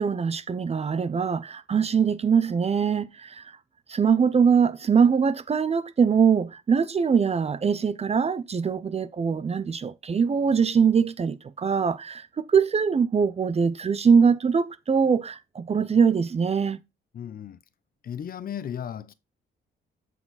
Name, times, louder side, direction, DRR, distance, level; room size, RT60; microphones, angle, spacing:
voice 1, 0.0-3.5 3.9-16.8, right 6 dB, 30° right, 0.6 m, -22 dB
voice 2, 17.1-17.6 18.0-19.1, left 9 dB, 45° left, 0.7 m, -35 dB
8.1 x 4.7 x 4.0 m
cardioid pair, 90°, 20 cm